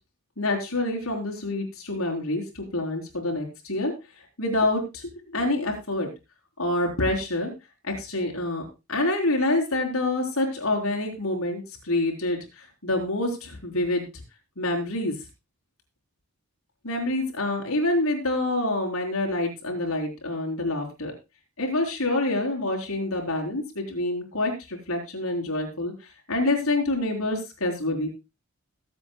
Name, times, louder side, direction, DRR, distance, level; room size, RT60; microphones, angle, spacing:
voice 1, 0.4-3.9 4.4-6.1 6.6-7.5 7.8-14.1 14.6-15.2 16.8-21.1 21.6-25.9 26.3-28.1, left 2 dB, 70° left, 0 dB, 4.0 m, -27 dB
21.5 x 8.0 x 2.3 m, 0.25 s
head